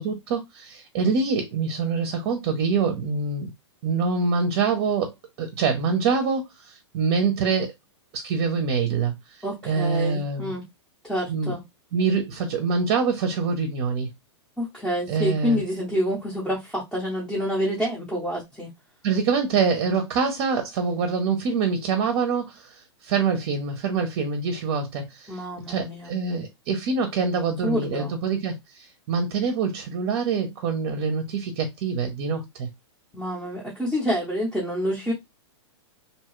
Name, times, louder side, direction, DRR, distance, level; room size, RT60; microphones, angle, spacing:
voice 1, 0.0-3.5 3.8-7.7 8.1-10.5 11.3-11.5 11.9-14.1 15.1-15.6 19.0-32.7, right 5 dB, 45° right, 0.7 m, -25 dB
voice 2, 9.4-10.6 11.0-11.6 14.6-18.7 25.3-26.1 27.6-28.1 33.1-35.1, equal, 5° left, 0.7 m, -27 dB
2.7 x 2.3 x 3.0 m
hypercardioid pair, 135°, 15 cm